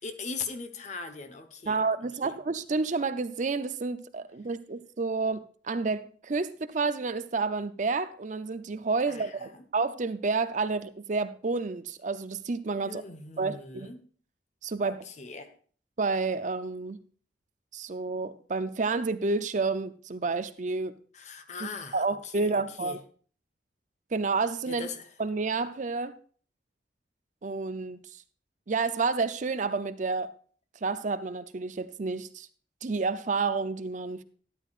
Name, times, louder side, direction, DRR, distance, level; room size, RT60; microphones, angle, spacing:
voice 1, 0.0-1.8 2.2-2.4 9.1-9.7 12.8-14.0 14.8-15.5 21.1-23.0 24.7-25.1, left 4 dB, 40° left, 1.1 m, -40 dB
voice 2, 1.7-13.0 13.4-13.9 14.6-15.0 16.0-17.0 17.7-20.9 21.6-23.0 24.1-24.9 25.2-26.2 27.4-28.0 28.7-30.3 30.8-32.5 32.8-34.2, right 4 dB, 45° right, 0.5 m, -30 dB
12.5 x 11.0 x 2.5 m
head